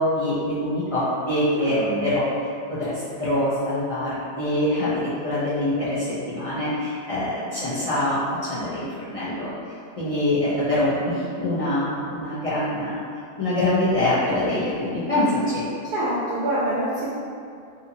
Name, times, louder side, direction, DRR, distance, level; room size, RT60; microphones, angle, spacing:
voice 1, 0.0-2.2 2.7-9.5 10.0-13.0 13.4-15.6, left 1 dB, 40° left, -11 dB, 0.5 m, -24 dB
voice 2, 1.5-2.1 15.9-17.1, right 1 dB, 60° right, -8 dB, 0.6 m, -26 dB
2.7 x 2.6 x 2.6 m, 2.4 s
omnidirectional pair, 1.2 m